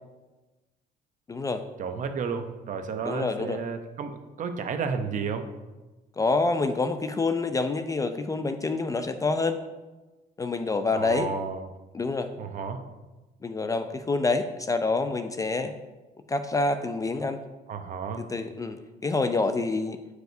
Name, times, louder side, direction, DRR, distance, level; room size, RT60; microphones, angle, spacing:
voice 1, 1.3-1.6 3.0-3.6 6.2-9.6 10.4-11.3 11.9-12.3 13.4-15.7 16.3-17.4 18.2-20.0, left 3 dB, 20° left, 8 dB, 0.3 m, -27 dB
voice 2, 1.8-5.5 10.9-11.6 12.4-12.8 17.7-18.3, right 5 dB, 50° right, 7 dB, 0.7 m, -32 dB
9.0 x 4.8 x 2.6 m, 1.1 s
cardioid pair, 110°, 17 cm